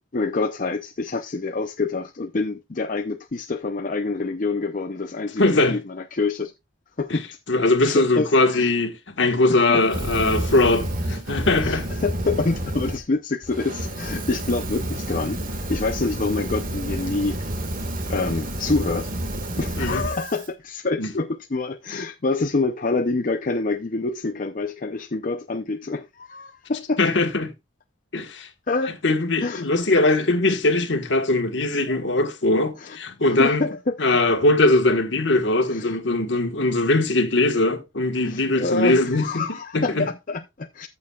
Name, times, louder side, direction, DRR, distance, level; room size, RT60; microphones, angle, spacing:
voice 1, 0.0-6.5 7.0-7.3 7.8-8.7 9.2-9.8 11.6-17.4 18.1-19.1 19.6-27.0 28.7-28.9 29.4-29.7 31.9-32.0 32.8-33.0 33.2-34.0 35.7-36.0 38.2-40.9, left 3 dB, 45° left, 0.6 m, -27 dB
voice 2, 5.4-5.8 7.1-7.2 7.5-11.9 19.8-20.0 21.0-21.1 27.0-27.5 28.1-28.5 29.0-33.7 34.0-39.4 39.7-40.1, left 2 dB, 65° left, 1.5 m, -21 dB
Fire, 9.8-13.0 13.4-20.5, right 1 dB, 45° right, 1.8 m, -29 dB
14.0 x 7.1 x 2.3 m
head